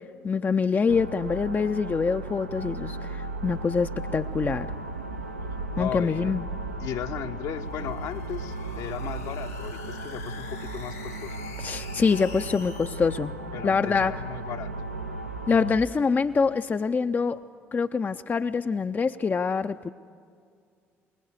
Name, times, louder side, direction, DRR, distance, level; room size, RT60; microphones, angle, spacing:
voice 1, 0.2-4.7 5.8-6.5 11.6-13.3 13.6-14.1 15.5-17.4 17.7-19.9, left 5 dB, 25° left, 9 dB, 0.4 m, -25 dB
sound 1, 0.9-15.8, right 2 dB, 85° right, 0.5 m, -36 dB
voice 2, 5.8-6.4 6.8-11.3 12.3-12.6 13.5-14.7, left 10 dB, 55° left, 8 dB, 0.7 m, -36 dB
sound 2, 7.5-12.9, left 6 dB, 80° left, 1.6 m, -46 dB
22.0 x 20.0 x 6.6 m, 2.2 s
figure-of-eight pair, 50°, 7 cm